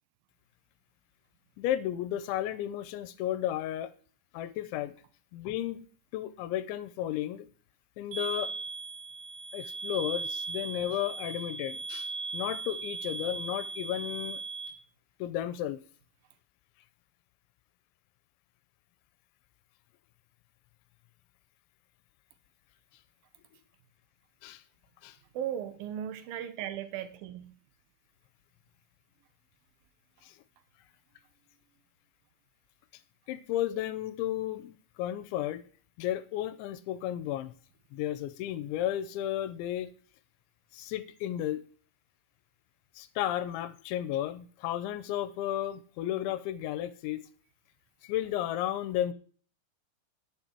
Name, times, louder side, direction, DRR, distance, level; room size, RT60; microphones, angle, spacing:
voice 1, 1.6-3.9 4.3-4.9 5.3-5.9 6.1-7.5 8.0-8.5 9.5-14.4 15.2-15.8 24.4-24.6 25.0-25.2 30.2-30.4 33.3-35.6 36.0-37.5 37.9-39.9 40.7-41.6 43.0-47.2 48.0-49.1, left 12 dB, 80° left, 3.1 m, -33 dB
sound 1, 8.1-14.7, right 4 dB, 85° right, 5.2 m, -38 dB
voice 2, 25.3-27.5, right 10 dB, 70° right, 2.4 m, -37 dB
10.5 x 8.9 x 4.6 m
omnidirectional pair, 5.3 m